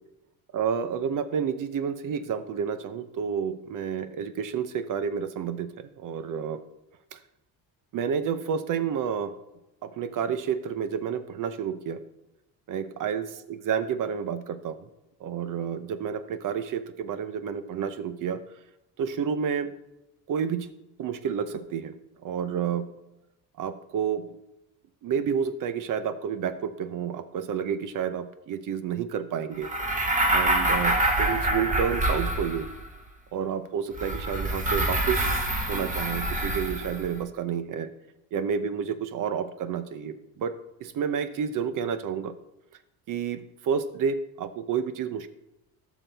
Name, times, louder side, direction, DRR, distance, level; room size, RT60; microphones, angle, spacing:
voice 1, 0.5-6.6 7.1-7.2 7.9-9.3 9.8-12.0 12.7-14.8 15.2-18.4 19.0-19.7 20.3-20.7 21.0-21.9 22.2-22.9 23.6-24.3 25.0-29.7 30.3-32.7 33.3-37.9 38.3-40.5 40.8-42.3 43.1-45.3, right 7 dB, 55° right, 11 dB, 0.8 m, -30 dB
sound 1, 29.6-32.9 33.9-37.1, right 1 dB, 20° right, 1.4 m, -26 dB
13.5 x 6.1 x 3.4 m, 0.90 s
cardioid pair, 105°, 38 cm